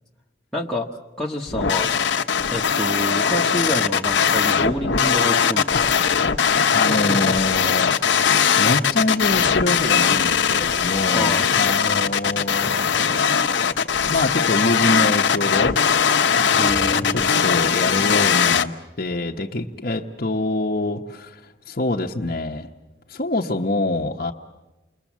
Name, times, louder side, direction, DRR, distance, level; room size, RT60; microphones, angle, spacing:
voice 1, 0.5-1.9 2.5-5.9 6.9-7.4 11.1-11.5 16.6-17.3, left 1 dB, ahead, -5 dB, 1.2 m, -27 dB
sound 1, 1.5-18.6, left 7 dB, 70° left, 1.0 m, -20 dB
voice 2, 5.7-13.7 14.1-15.8 16.3-18.7 19.0-22.7 23.1-24.3, left 2 dB, 45° left, -1 dB, 1.0 m, -26 dB
29.5 x 22.0 x 7.4 m, 1.1 s
head